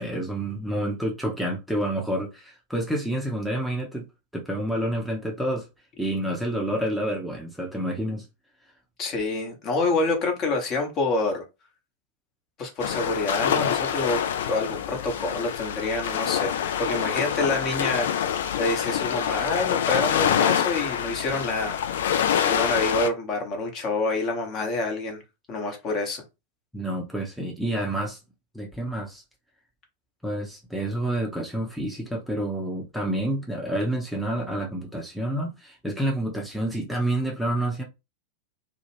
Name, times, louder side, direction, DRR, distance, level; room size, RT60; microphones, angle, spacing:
voice 1, 0.0-4.1 4.3-5.7 6.0-8.3 26.7-28.2 28.5-29.2 30.2-37.8, right 1 dB, ahead, 0.6 m, -28 dB
voice 2, 9.0-11.4 12.6-14.2 14.5-21.8 22.4-25.2 25.5-26.2, left 2 dB, 35° left, 0.9 m, -27 dB
sound 1, 12.8-23.1, left 9 dB, 60° left, 0.3 m, -26 dB
2.3 x 2.1 x 3.2 m
figure-of-eight pair, 90°, 0 cm